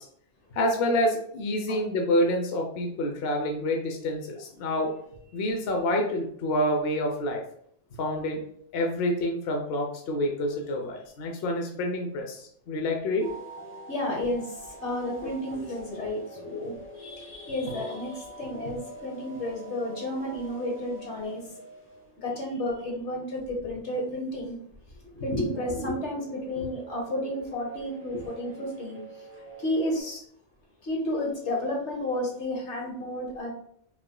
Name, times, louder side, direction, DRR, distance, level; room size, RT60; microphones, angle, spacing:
voice 1, 0.5-4.9 5.3-7.4 8.0-8.4 8.7-13.3, left 1 dB, 65° left, 2 dB, 0.9 m, -27 dB
sound 1, 13.2-22.4 25.5-30.0, right 2 dB, 10° left, 1.1 m, -45 dB
voice 2, 13.9-21.6 22.2-24.6 24.9-29.2 29.6-30.2 30.8-33.5, left 1 dB, 85° left, -1 dB, 1.6 m, -32 dB
5.8 x 3.4 x 2.2 m, 0.66 s
omnidirectional pair, 1.2 m